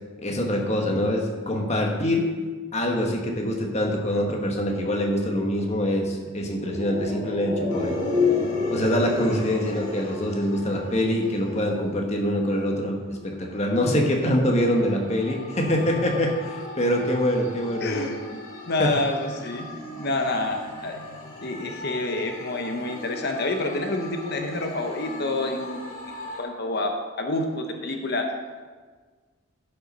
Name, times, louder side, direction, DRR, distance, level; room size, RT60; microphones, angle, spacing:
voice 1, 0.2-2.3 2.7-8.0 8.7-18.1 18.8-18.9, equal, 30° left, 1 dB, 1.4 m, -24 dB
sound 1, 6.5-11.1 11.3-11.4, left 3 dB, 25° right, 2.0 m, -28 dB
sound 2, 7.7-12.1 12.7-26.4, left 1 dB, 80° left, 1.9 m, -41 dB
voice 2, 17.8-19.7 20.0-21.0 21.4-25.8 26.4-26.9 27.2-28.3, left 2 dB, 50° left, 4 dB, 0.9 m, -28 dB
11.5 x 5.8 x 5.3 m, 1.5 s
head